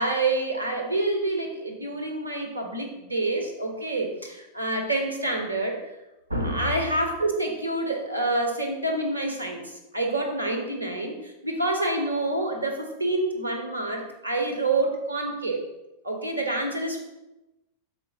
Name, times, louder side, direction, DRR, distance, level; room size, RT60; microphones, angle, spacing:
voice 1, 0.0-5.8 6.3-15.6 16.0-17.0, right 2 dB, 80° right, 3 dB, 1.3 m, -27 dB
6.8 x 4.5 x 5.5 m, 0.98 s
figure-of-eight pair, 90°, 0 cm